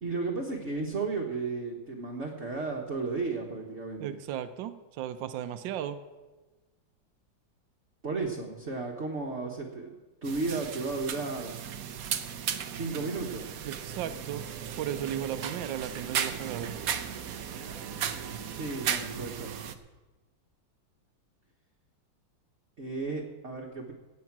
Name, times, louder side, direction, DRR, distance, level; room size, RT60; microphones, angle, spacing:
voice 1, 0.0-4.2 8.0-11.6 12.7-13.5 18.5-19.6 22.8-23.9, right 3 dB, 40° right, 0 dB, 1.5 m, -34 dB
voice 2, 4.0-6.0 13.6-14.4 14.8-16.8, right 10 dB, 75° right, 10 dB, 1.5 m, -35 dB
sound 1, 10.2-19.7, right 8 dB, 60° right, 1.0 m, -36 dB
17.5 x 8.4 x 6.1 m, 1.2 s
omnidirectional pair, 2.1 m